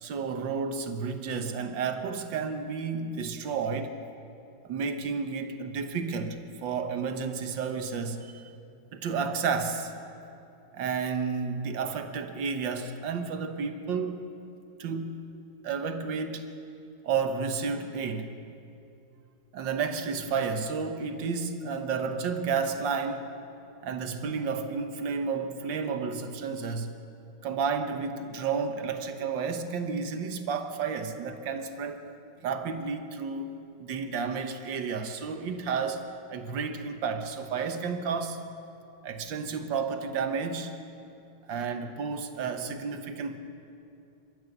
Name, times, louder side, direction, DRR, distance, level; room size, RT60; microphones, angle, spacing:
voice 1, 0.0-4.0 4.6-8.4 8.9-9.9 10.7-14.3 14.8-15.3 15.6-16.5 17.0-18.3 19.5-23.3 23.8-27.0 27.4-32.0 32.4-38.4 39.0-40.8 41.5-43.4, right 5 dB, 80° right, 7 dB, 1.9 m, -31 dB
27.0 x 13.5 x 7.9 m, 2.7 s
omnidirectional pair, 2.0 m